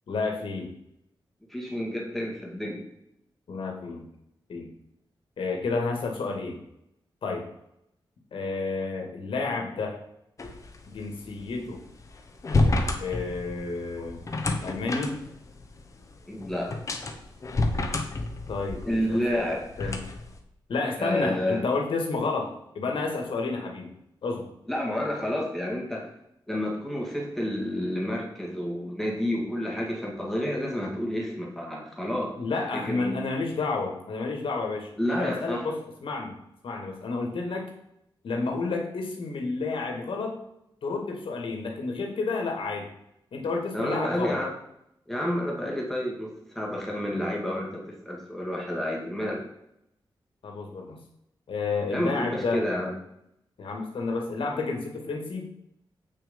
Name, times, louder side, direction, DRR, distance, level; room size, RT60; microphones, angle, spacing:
voice 1, 0.1-0.7 3.5-4.1 4.5-4.7 5.4-6.6 7.2-7.5 8.3-10.0 10.9-11.8 13.0-14.2 14.6-15.2 18.5-20.0 20.7-23.9 24.2-24.5 32.4-36.4 36.6-37.7 38.2-40.4 40.8-42.9 43.3-44.4 50.4-51.0 51.5-52.7 53.6-55.5, left 3 dB, 80° left, 2 dB, 2.2 m, -30 dB
voice 2, 1.5-2.8 16.3-16.7 18.9-20.0 21.0-21.6 24.7-26.1 26.5-32.3 32.7-33.2 35.0-35.7 43.7-44.5 45.1-49.4 51.9-52.9, left 1 dB, 5° left, -2 dB, 2.1 m, -30 dB
sound 1, 10.4-20.4, left 2 dB, 35° left, 1.1 m, -30 dB
8.4 x 6.2 x 5.4 m, 0.79 s
wide cardioid pair, 175°, 9 cm